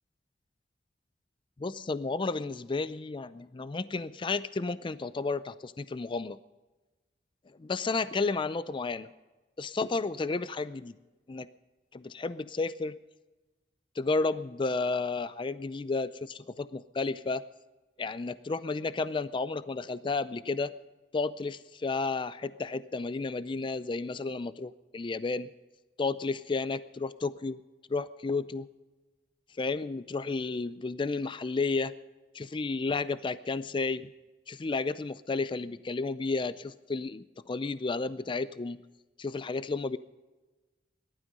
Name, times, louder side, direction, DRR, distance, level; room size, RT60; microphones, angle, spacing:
voice 1, 1.6-6.4 7.5-9.1 9.6-11.0 11.3-11.5 11.9-13.0 14.0-17.4 18.0-20.7 21.1-25.5 26.0-27.6 27.9-28.7 29.6-31.9 32.3-34.1 34.5-38.8 39.2-40.0, left 3 dB, 30° left, 15 dB, 0.4 m, -32 dB
18.5 x 12.5 x 5.4 m, 1.2 s
head